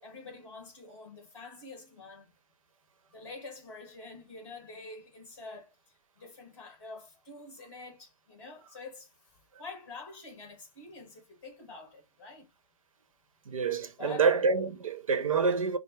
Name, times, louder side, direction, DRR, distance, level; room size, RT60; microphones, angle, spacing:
voice 1, 0.0-2.3 3.1-5.7 6.2-12.5 14.0-14.3, left 3 dB, 10° left, 2.1 m, -47 dB
voice 2, 13.5-15.8, right 5 dB, 70° right, 0.9 m, -27 dB
4.9 x 2.1 x 4.6 m
hypercardioid pair, 175°, 18 cm